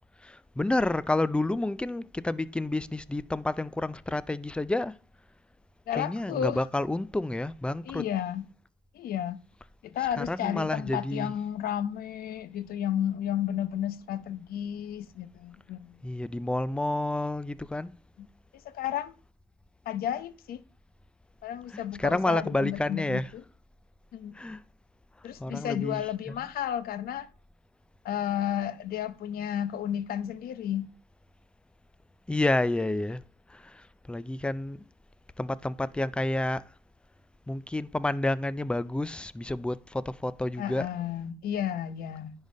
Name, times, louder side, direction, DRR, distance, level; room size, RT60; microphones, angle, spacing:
voice 1, 0.2-4.9 5.9-8.1 10.0-11.3 16.0-17.9 21.7-23.3 24.4-24.6 25.4-26.3 32.3-33.2 33.5-34.8 35.4-36.6 37.5-40.9, left 2 dB, 5° left, 0.4 m, -30 dB
voice 2, 5.9-6.6 7.9-8.5 8.9-9.4 9.8-15.9 18.2-18.3 18.6-19.1 19.9-20.6 21.4-23.4 24.1-24.3 25.2-27.3 28.0-30.9 40.6-42.3, left 10 dB, 60° left, 0.9 m, -32 dB
10.5 x 4.0 x 5.1 m
cardioid pair, 110°, 17 cm